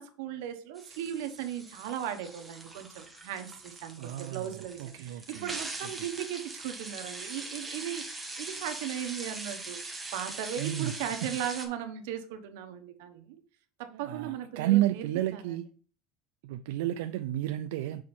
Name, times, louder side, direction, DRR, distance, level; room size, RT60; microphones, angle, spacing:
voice 1, 0.0-4.8 5.3-9.8 10.1-13.4 13.8-15.1 15.3-15.4, right 10 dB, 70° right, 1.0 m, -37 dB
sound 1, 0.7-11.7, right 2 dB, 5° right, 0.8 m, -42 dB
voice 2, 4.0-5.6 5.8-6.1 10.6-11.3 13.9-15.6 16.4-18.0, right 14 dB, 85° right, 0.3 m, -31 dB
6.4 x 4.3 x 4.3 m
cardioid pair, 175°, 0 cm